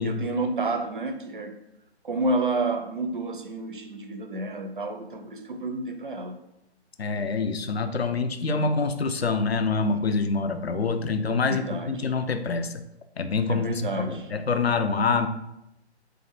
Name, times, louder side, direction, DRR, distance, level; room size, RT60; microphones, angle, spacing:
voice 1, 0.0-1.6 2.0-6.4 8.3-8.7 11.5-12.1 13.5-14.3, right 2 dB, 50° right, 7 dB, 0.5 m, -30 dB
voice 2, 7.0-12.8 13.2-15.3, left 4 dB, 65° left, 8 dB, 0.5 m, -26 dB
3.3 x 2.6 x 4.0 m, 0.88 s
figure-of-eight pair, 150°, 34 cm